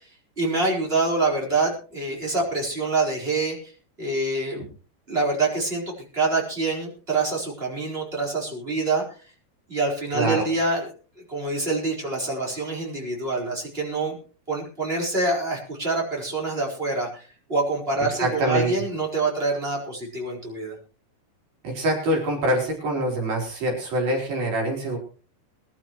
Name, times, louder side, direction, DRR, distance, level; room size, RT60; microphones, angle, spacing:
voice 1, 0.4-3.7 4.0-4.7 5.1-9.0 9.7-10.9 11.3-14.2 14.5-20.8, right 3 dB, 15° right, -2 dB, 4.4 m, -26 dB
voice 2, 10.1-10.5 18.1-18.7 21.6-25.0, right 1 dB, 60° right, 0 dB, 5.4 m, -25 dB
22.5 x 12.5 x 3.1 m, 0.38 s
omnidirectional pair, 4.9 m